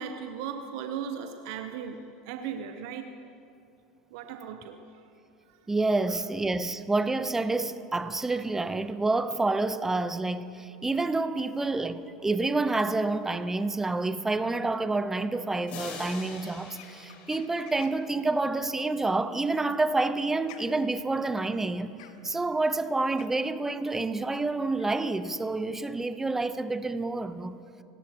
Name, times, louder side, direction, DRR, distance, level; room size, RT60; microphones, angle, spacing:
voice 1, 0.0-3.1 4.1-4.8, right 7 dB, 65° right, 0.8 m, -37 dB
voice 2, 5.7-22.0 22.2-27.6, right 3 dB, 10° right, 0.8 m, -28 dB
sound 1, 15.7-18.4, left 4 dB, 50° left, 3.5 m, -44 dB
sound 2, 16.7-18.1 19.5-25.1, left 10 dB, 70° left, 1.2 m, -52 dB
28.0 x 14.0 x 3.0 m
hypercardioid pair, 85°, 3 cm